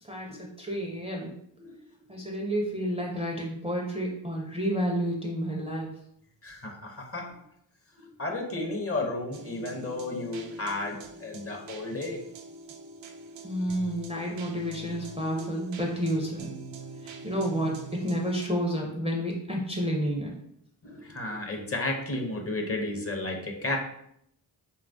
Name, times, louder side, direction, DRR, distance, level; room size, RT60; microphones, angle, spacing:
voice 1, 0.0-1.3 2.1-5.9 13.4-16.5 17.0-20.3, equal, 15° right, -1 dB, 0.4 m, -30 dB
voice 2, 6.4-7.4 8.0-12.2 15.4-15.5 20.8-23.8, left 2 dB, 30° left, 2 dB, 0.6 m, -33 dB
sound 1, 9.3-18.5, right 2 dB, 65° right, 0.5 m, -44 dB
3.0 x 2.3 x 2.5 m, 0.71 s
cardioid pair, 50°, 48 cm